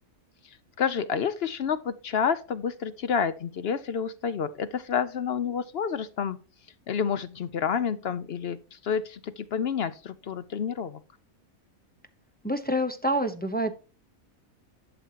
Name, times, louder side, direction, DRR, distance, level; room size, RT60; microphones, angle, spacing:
voice 1, 0.4-6.4 6.9-11.0, left 7 dB, 60° left, 0.7 m, -29 dB
voice 2, 12.4-13.7, equal, 10° left, 0.7 m, -27 dB
12.0 x 6.9 x 2.8 m
omnidirectional pair, 1.5 m